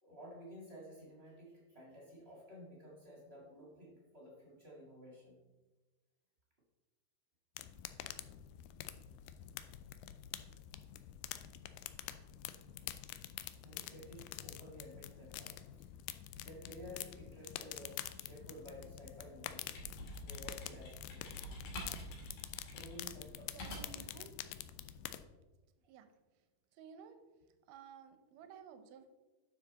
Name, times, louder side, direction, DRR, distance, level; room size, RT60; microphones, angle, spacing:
voice 1, 0.0-5.4 13.6-15.9 16.4-19.7 20.2-21.5 22.7-23.4, equal, 35° right, -3 dB, 0.9 m, -53 dB
sound 1, 7.6-25.2, left 12 dB, 85° left, 1.9 m, -47 dB
sound 2, 19.7-24.1, equal, 65° left, 3.7 m, -48 dB
voice 2, 23.5-24.3 25.9-26.1 26.8-27.2 27.7-29.1, right 7 dB, 80° right, 9 dB, 2.0 m, -54 dB
9.5 x 6.3 x 4.0 m, 1.2 s
omnidirectional pair, 4.4 m